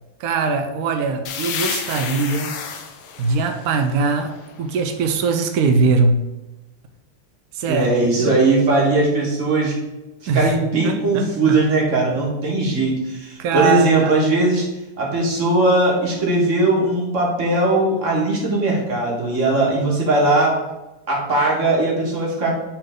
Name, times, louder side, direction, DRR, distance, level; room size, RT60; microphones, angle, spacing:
voice 1, 0.2-2.6 3.2-6.3 7.5-7.9 8.2-8.4 10.3-10.5 10.8-11.6 12.0-12.1 13.4-14.1, right 4 dB, 85° right, 5 dB, 0.8 m, -21 dB
sound 1, 1.3-4.9, left 7 dB, 80° left, 1.7 m, -31 dB
voice 2, 7.7-9.8 10.3-14.6 15.0-20.6 21.1-22.6, right 2 dB, 35° right, -3 dB, 2.0 m, -19 dB
9.0 x 3.9 x 3.7 m, 1.0 s
omnidirectional pair, 2.3 m